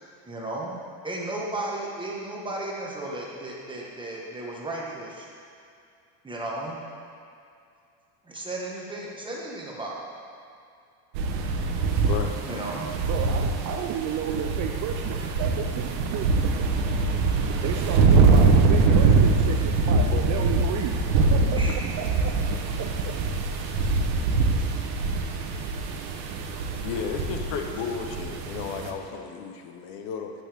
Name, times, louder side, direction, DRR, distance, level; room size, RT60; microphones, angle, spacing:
voice 1, 0.3-0.7 1.0-5.3 6.2-6.8 8.2-10.0 12.4-12.9 21.5-21.7 25.3-25.8, right 2 dB, 10° right, -3 dB, 1.3 m, -34 dB
sound 1, 11.1-28.9, right 4 dB, 85° right, 1.1 m, -23 dB
voice 2, 12.0-12.4 26.8-30.3, left 6 dB, 60° left, 5 dB, 0.9 m, -33 dB
voice 3, 13.1-16.7 17.2-21.0 21.3-23.1, right 9 dB, 40° right, 3 dB, 0.5 m, -33 dB
8.8 x 7.2 x 3.5 m, 2.5 s
supercardioid pair, 120°, 48 cm